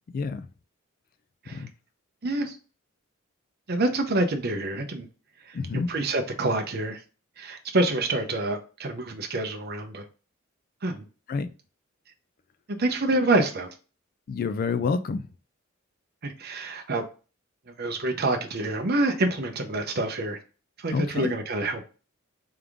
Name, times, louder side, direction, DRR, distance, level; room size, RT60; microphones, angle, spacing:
voice 1, 0.1-0.5 1.5-1.7 5.5-5.9 11.3-11.5 14.3-15.3 20.9-21.3, left 4 dB, 45° left, 0.3 m, -28 dB
voice 2, 2.2-2.6 3.7-5.1 5.5-5.6 5.9-7.0 7.4-10.0 10.8-11.0 12.8-13.7 16.2-17.0 17.7-20.4 20.8-21.8, right 2 dB, 50° right, 0.7 m, -27 dB
3.6 x 3.4 x 3.5 m
head